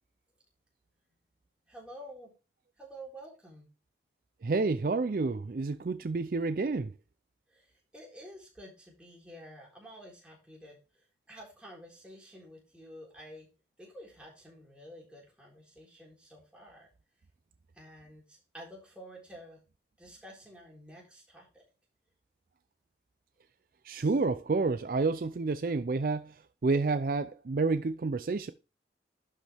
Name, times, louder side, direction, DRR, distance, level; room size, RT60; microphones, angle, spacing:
voice 1, 1.7-2.3 2.8-3.7 7.5-13.5 13.8-16.9 17.8-19.6 20.0-21.6 24.0-24.1, equal, 5° right, 3.8 m, -50 dB
voice 2, 4.4-6.9 23.9-26.3 26.6-28.5, right 3 dB, 50° right, 0.4 m, -29 dB
12.0 x 5.3 x 3.5 m
head